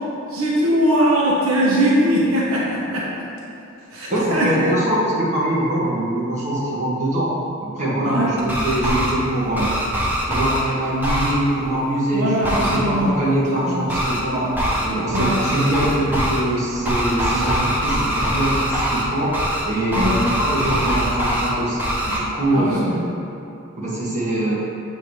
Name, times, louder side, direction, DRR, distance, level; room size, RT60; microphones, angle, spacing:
voice 1, 0.3-3.1 3.9-4.7 8.0-8.3 12.1-13.2 13.6-13.8 15.1-15.3 19.9-20.2 22.6-23.1, equal, 80° right, -5 dB, 0.9 m, -20 dB
voice 2, 4.1-7.3 7.6-9.7 10.3-14.5 14.8-19.3 19.6-21.8 22.0-22.9 23.8-24.6, right 1 dB, 35° right, -8 dB, 1.4 m, -23 dB
sound 1, 8.4-9.1 9.5-10.6 11.0-11.3 12.4-12.8 13.9-14.2 14.5-14.9 15.1-16.4 16.8-19.0 19.3-19.6 19.9-21.5 21.8-22.2, equal, 10° right, 0.7 m, -22 dB
7.2 x 2.8 x 4.8 m, 2.8 s
head